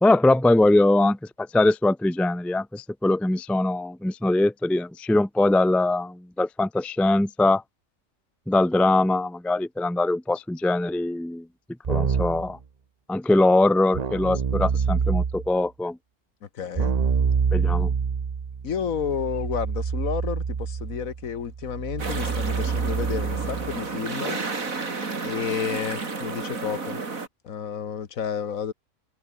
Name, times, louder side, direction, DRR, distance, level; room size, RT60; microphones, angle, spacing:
voice 1, 0.0-7.6 8.5-11.5 11.9-12.6 13.1-16.0 17.5-17.9, left 2 dB, ahead, 0.4 m, -22 dB
Keyboard (musical), 11.8-12.5 13.9-15.5 16.7-23.8, right 6 dB, 35° right, 0.7 m, -26 dB
voice 2, 16.4-16.9 18.6-24.4 25.2-27.0 27.4-28.7, left 7 dB, 65° left, 1.6 m, -31 dB
sound 1, 22.0-27.3, right 4 dB, 60° right, 3.3 m, -31 dB
omnidirectional pair, 1.6 m